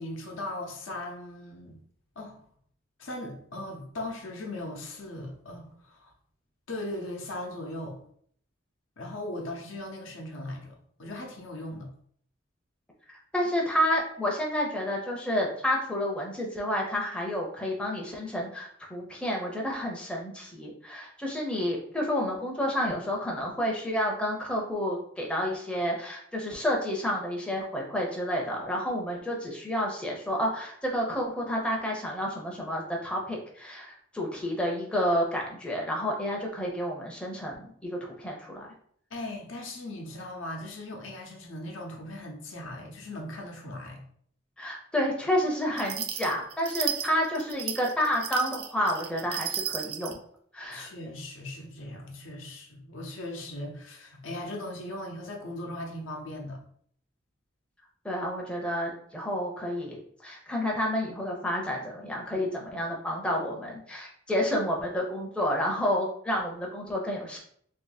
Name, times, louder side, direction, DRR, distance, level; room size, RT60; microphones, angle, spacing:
voice 1, 0.0-1.8 2.2-2.4 3.0-6.1 6.7-8.0 9.0-11.9 39.1-44.0 50.7-56.6, left 1 dB, 75° left, 1 dB, 0.8 m, -38 dB
voice 2, 13.1-38.7 44.6-50.2 50.5-50.9 58.0-67.4, equal, 5° left, -2 dB, 0.5 m, -30 dB
sound 1, 45.8-50.2, right 10 dB, 50° right, 0.3 m, -34 dB
2.8 x 2.7 x 3.9 m, 0.63 s
head